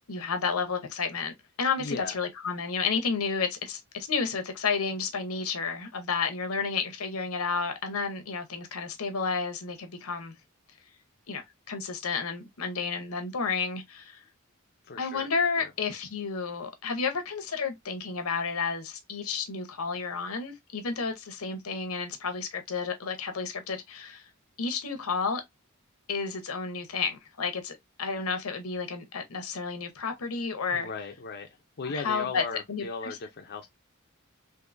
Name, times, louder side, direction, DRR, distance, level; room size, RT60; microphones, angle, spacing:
voice 1, 0.1-10.3 11.3-14.2 15.0-24.2 24.6-25.4 26.1-30.9 31.8-32.4 32.7-32.9, left 5 dB, 80° left, 0.8 m, -31 dB
voice 2, 1.8-2.1 14.8-15.3 15.6-15.7 30.7-33.7, left 4 dB, 50° left, 0.5 m, -37 dB
3.7 x 2.6 x 2.5 m
head